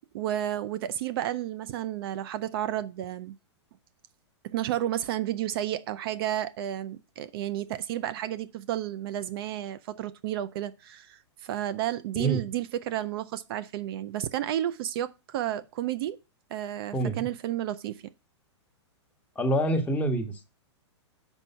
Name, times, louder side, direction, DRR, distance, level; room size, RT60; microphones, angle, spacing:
voice 1, 0.0-3.4 4.4-16.2 16.5-18.0, right 12 dB, 55° right, 0.5 m, -32 dB
voice 2, 12.1-12.5 16.9-17.2 19.3-20.4, right 1 dB, 10° left, 1.3 m, -26 dB
6.3 x 5.5 x 5.5 m
hypercardioid pair, 125°, 15 cm